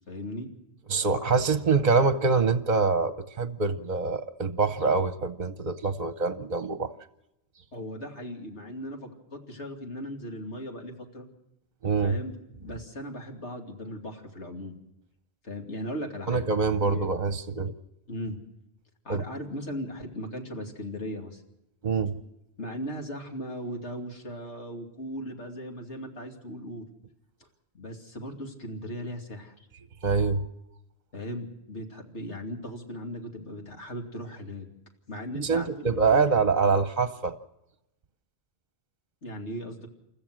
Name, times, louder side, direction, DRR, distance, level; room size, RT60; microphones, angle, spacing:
voice 1, 0.1-0.5 7.7-11.3 12.0-12.3 12.6-14.8 15.4-16.5 16.8-17.1 18.1-18.4 19.0-21.4 22.6-26.9 27.7-29.5 31.1-34.7 35.1-36.4 39.2-39.9, equal, 90° left, 2 dB, 3.0 m, -37 dB
voice 2, 0.9-6.9 11.8-12.2 16.3-17.7 19.1-19.2 21.8-22.1 30.0-30.4 35.3-37.3, right 4 dB, 45° right, 10 dB, 0.9 m, -25 dB
29.5 x 14.5 x 6.2 m, 0.89 s
omnidirectional pair, 1.1 m